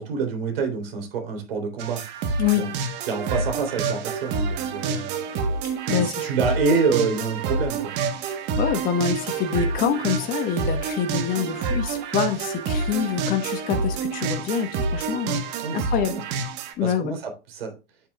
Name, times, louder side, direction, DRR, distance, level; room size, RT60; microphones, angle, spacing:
voice 1, 0.0-2.0 2.5-2.7 3.1-5.2 5.9-7.9 15.6-16.2 16.8-17.7, right 4 dB, 55° right, 3.5 m, -27 dB
sound 1, 1.8-16.7, right 4 dB, 30° right, 1.3 m, -28 dB
voice 2, 5.6-6.3 8.2-15.4 15.7-16.1 16.8-17.1, left 8 dB, 25° left, 1.3 m, -26 dB
8.7 x 8.6 x 2.4 m
hypercardioid pair, 120°, 35 cm